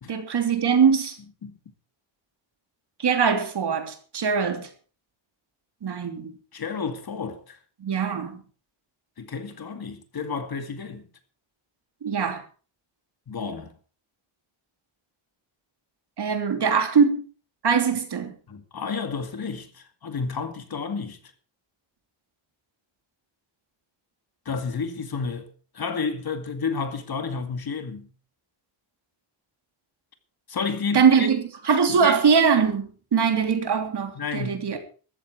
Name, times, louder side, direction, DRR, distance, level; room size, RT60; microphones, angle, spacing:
voice 1, 0.1-1.2 3.0-4.7 5.8-6.3 7.8-8.4 12.0-12.4 16.2-17.2 17.6-18.3 30.9-34.8, right 6 dB, 55° right, 3.2 m, -22 dB
voice 2, 6.5-7.6 9.2-11.1 13.3-13.7 18.5-21.2 24.5-25.5 25.7-28.1 30.5-31.3 31.9-32.2 34.2-34.8, left 5 dB, 45° left, 2.2 m, -31 dB
14.5 x 13.5 x 4.7 m
wide cardioid pair, 150°, 49 cm